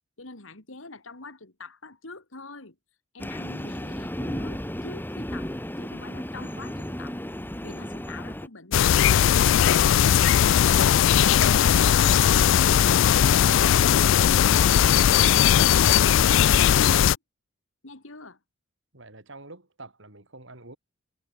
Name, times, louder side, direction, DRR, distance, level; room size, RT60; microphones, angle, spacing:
voice 1, 0.2-2.8 3.1-7.2 7.6-10.6 17.8-18.4, left 3 dB, 85° left, 3.2 m, -44 dB
Train, 3.2-8.5, equal, 10° left, 2.5 m, -34 dB
sound 1, 8.7-17.2, left 9 dB, 70° left, 0.4 m, -18 dB
voice 2, 18.9-20.8, right 2 dB, 65° right, 5.1 m, -46 dB
head